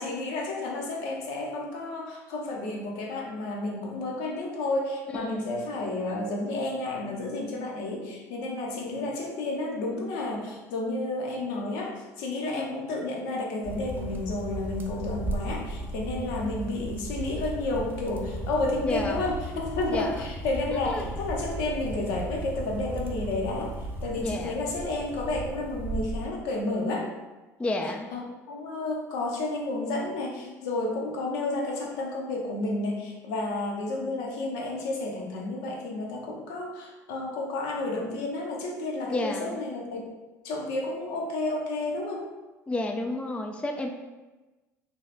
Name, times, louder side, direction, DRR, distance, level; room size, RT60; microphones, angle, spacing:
voice 1, 0.0-27.1 28.1-28.2 28.5-40.0 40.4-42.3, left 2 dB, 70° left, 0 dB, 0.6 m, -31 dB
voice 2, 5.1-5.5 12.4-12.9 18.8-19.4 19.9-20.2 20.8-21.1 24.2-24.6 27.6-28.1 39.1-39.6 42.7-43.9, left 2 dB, 15° left, 3 dB, 0.3 m, -31 dB
sound 1, 13.6-26.3, right 1 dB, 25° right, 0.6 m, -36 dB
2.7 x 2.3 x 3.3 m, 1.1 s
hypercardioid pair, 65°, 9 cm